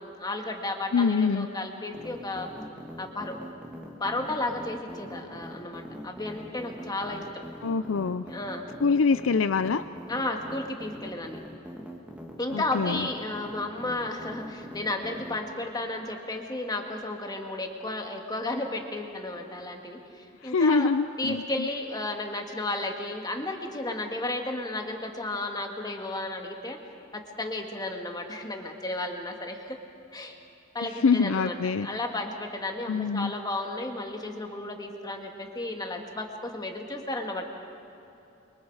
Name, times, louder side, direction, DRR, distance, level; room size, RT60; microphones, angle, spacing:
voice 1, 0.0-2.5 3.0-3.4 4.0-7.4 8.3-8.6 10.1-11.4 12.4-20.9 21.2-26.8 27.1-29.8 30.1-30.4 30.7-31.6 31.8-37.4, left 2 dB, 20° left, 3 dB, 2.1 m, -33 dB
voice 2, 0.9-1.5 7.6-8.2 8.8-9.8 12.5-13.1 20.4-21.7 31.0-31.9 32.9-33.3, left 4 dB, 75° left, 12 dB, 0.5 m, -24 dB
sound 1, 1.9-15.4, equal, 5° right, 2.0 m, -42 dB
29.5 x 24.0 x 4.9 m, 2.9 s
head